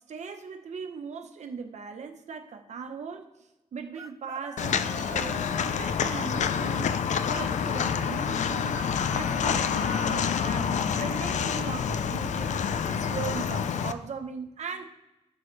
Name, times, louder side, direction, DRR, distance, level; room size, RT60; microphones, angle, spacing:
voice 1, 0.0-3.3 3.7-5.5 5.8-8.7 9.1-12.6 12.9-14.8, right 6 dB, 70° right, 6 dB, 1.0 m, -39 dB
Chicken rooster, 3.9-5.8 8.4-10.2, right 4 dB, 30° right, 0.4 m, -44 dB
Walk footsteps, 4.6-13.9, left 7 dB, 80° left, 0.5 m, -28 dB
sound 1, 6.9-12.7, left 2 dB, 25° left, 1.5 m, -48 dB
12.5 x 4.7 x 3.3 m, 0.95 s
wide cardioid pair, 130°, 12 cm